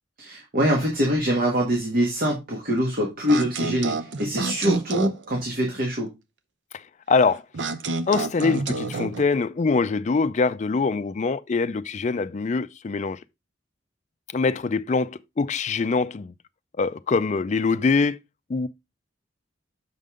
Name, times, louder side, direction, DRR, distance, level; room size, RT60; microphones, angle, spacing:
voice 1, 0.2-6.1, equal, 50° right, 1.6 m, -24 dB
sound 1, 3.3-5.2 7.5-9.2, right 3 dB, 65° right, 0.7 m, -28 dB
voice 2, 7.1-7.4 8.1-13.2 14.3-16.3 16.8-18.2 18.5-18.7, left 4 dB, 35° left, 0.4 m, -23 dB
6.5 x 5.3 x 3.7 m
head